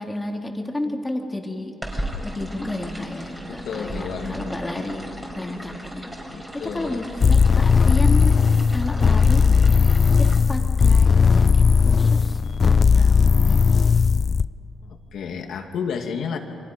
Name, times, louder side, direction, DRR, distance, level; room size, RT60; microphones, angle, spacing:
voice 1, 0.0-1.7 2.2-5.1 5.3-6.1 6.4-8.4 8.7-13.8, left 1 dB, 15° left, 2 dB, 2.7 m, -32 dB
sound 1, 1.8-10.4, equal, 10° right, 4.3 m, -35 dB
voice 2, 3.5-4.6 6.3-7.0 12.4-12.6 14.8-16.4, left 6 dB, 70° left, 4 dB, 2.3 m, -31 dB
sound 2, 7.2-14.5, left 5 dB, 40° left, 0.5 m, -17 dB
28.5 x 24.0 x 5.3 m, 2.9 s
cardioid pair, 90°, 0 cm